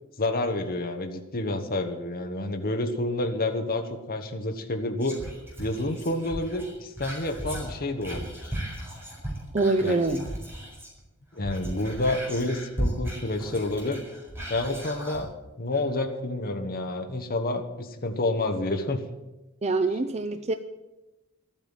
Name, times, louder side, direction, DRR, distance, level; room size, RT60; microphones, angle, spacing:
voice 1, 0.2-5.2 5.6-8.5 9.8-10.3 11.3-14.0 14.5-15.3 15.6-19.0, left 2 dB, 45° left, 5 dB, 1.3 m, -29 dB
Whispering, 5.0-11.0 11.3-15.3 15.7-15.8, right 1 dB, 10° right, 4.6 m, -36 dB
voice 2, 9.5-10.2 19.6-20.5, right 3 dB, 30° right, 8 dB, 0.6 m, -24 dB
12.5 x 8.9 x 8.9 m, 1.0 s
head